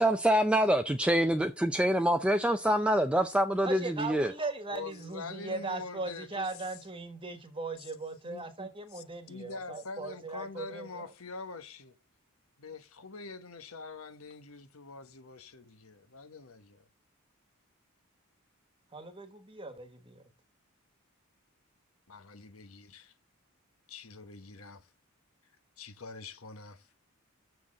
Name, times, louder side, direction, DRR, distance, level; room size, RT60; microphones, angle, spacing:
voice 1, 0.0-4.3, right 1 dB, 5° right, 0.4 m, -26 dB
voice 2, 3.6-11.1 18.9-20.2, right 3 dB, 25° right, 1.4 m, -39 dB
voice 3, 4.4-6.5 7.8-7.9 8.2-8.5 8.9-11.9 12.6-16.9 22.1-23.1 23.9-24.8 25.8-26.9, left 4 dB, 70° left, 1.2 m, -45 dB
7.2 x 6.2 x 7.4 m
head